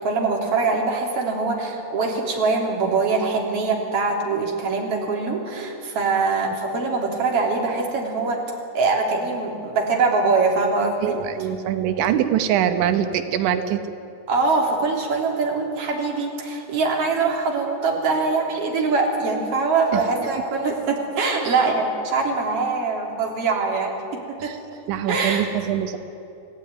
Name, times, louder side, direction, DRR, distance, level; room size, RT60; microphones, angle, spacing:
voice 1, 0.0-11.2 14.3-24.6 25.1-25.5, right 4 dB, 35° right, 0 dB, 3.8 m, -23 dB
voice 2, 11.0-13.8 19.9-20.0 24.4-24.6 24.9-26.0, right 10 dB, 90° right, 8 dB, 3.5 m, -23 dB
29.0 x 17.5 x 9.6 m, 2.7 s
omnidirectional pair, 5.2 m